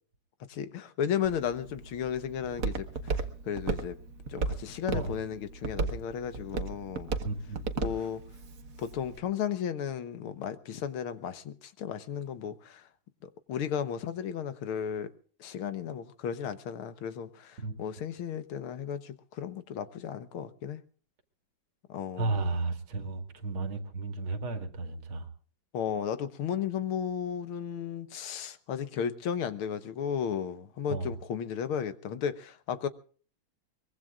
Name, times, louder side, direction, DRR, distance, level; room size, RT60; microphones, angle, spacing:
voice 1, 0.5-3.2 3.4-4.0 4.3-7.1 7.8-8.2 8.8-12.9 13.2-15.1 15.4-20.8 21.9-22.3 25.7-32.9, left 8 dB, 85° left, 2.0 m, -34 dB
Walk footsteps, 1.2-9.2, right 4 dB, 45° right, 1.5 m, -36 dB
voice 2, 7.2-7.6 17.6-17.7 22.2-25.3 30.9-31.1, right 3 dB, 75° right, 2.8 m, -33 dB
23.5 x 22.0 x 2.4 m
omnidirectional pair, 2.3 m